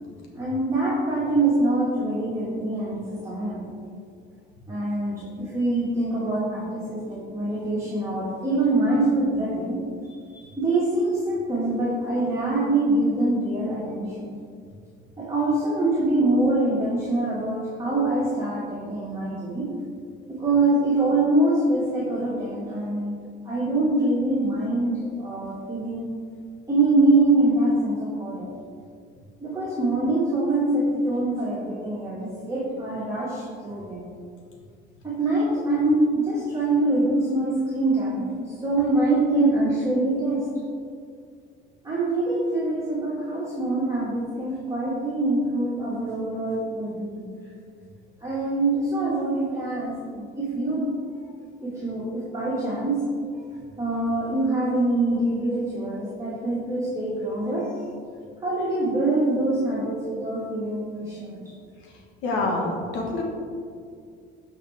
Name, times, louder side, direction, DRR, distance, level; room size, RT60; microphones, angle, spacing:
voice 1, 0.3-3.7 4.7-14.3 15.2-19.7 20.3-23.2 23.4-26.1 26.7-28.5 29.4-34.0 35.0-40.6 41.8-47.3 48.2-50.9 51.6-53.0 53.8-57.8 58.4-61.4, right 2 dB, 15° right, -9 dB, 2.1 m, -24 dB
voice 2, 62.2-63.2, left 2 dB, 80° left, 0 dB, 1.7 m, -26 dB
12.5 x 5.3 x 3.6 m, 2.2 s
cardioid pair, 125°, 20 cm